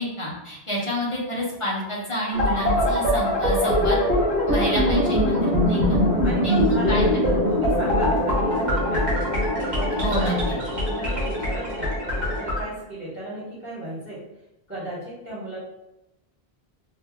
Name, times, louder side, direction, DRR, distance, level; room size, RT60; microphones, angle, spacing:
voice 1, 0.0-4.0 4.5-6.0 6.4-6.6 6.9-7.4 10.0-10.4, equal, 30° left, -5 dB, 1.0 m, -28 dB
sound 1, 2.3-12.6, left 1 dB, 45° right, 1.4 m, -22 dB
voice 2, 6.0-9.0 9.6-10.3 10.7-14.2 14.7-15.6, right 1 dB, 10° right, -9 dB, 1.1 m, -34 dB
2.8 x 2.6 x 3.5 m, 0.91 s
omnidirectional pair, 1.1 m